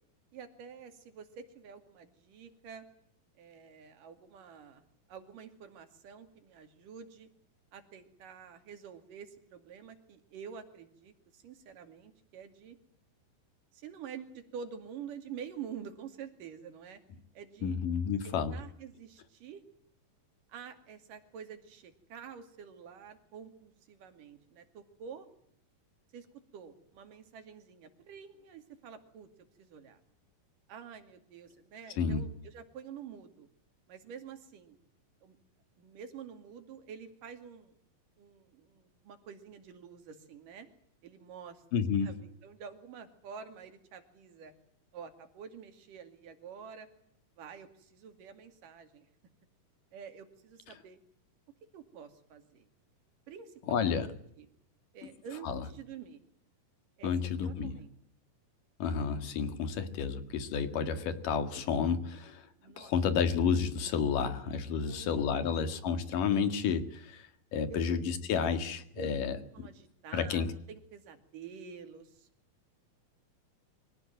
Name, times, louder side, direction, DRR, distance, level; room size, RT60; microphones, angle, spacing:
voice 1, 0.3-2.8 3.4-7.3 7.7-12.8 13.7-17.0 17.4-17.8 18.2-19.6 20.5-25.3 26.1-29.3 29.6-30.0 30.7-33.5 33.9-34.8 35.2-35.4 35.8-37.7 38.2-40.7 41.0-41.6 42.0-44.5 44.9-46.9 47.4-49.1 49.9-51.0 51.7-52.7 53.3-54.5 54.9-56.2 57.0-57.1 57.4-57.9 62.6-62.9 64.7-65.1 65.3-65.8 67.7-67.8 69.0-69.1 69.5-72.3, right 7 dB, 65° right, 7 dB, 3.9 m, -48 dB
voice 2, 17.6-18.6 32.0-32.2 41.7-42.2 53.7-54.1 55.4-55.6 57.0-57.7 58.8-62.4 62.8-69.7 70.1-70.5, left 6 dB, 70° left, 9 dB, 3.4 m, -31 dB
24.5 x 17.5 x 9.3 m, 0.68 s
omnidirectional pair, 4.1 m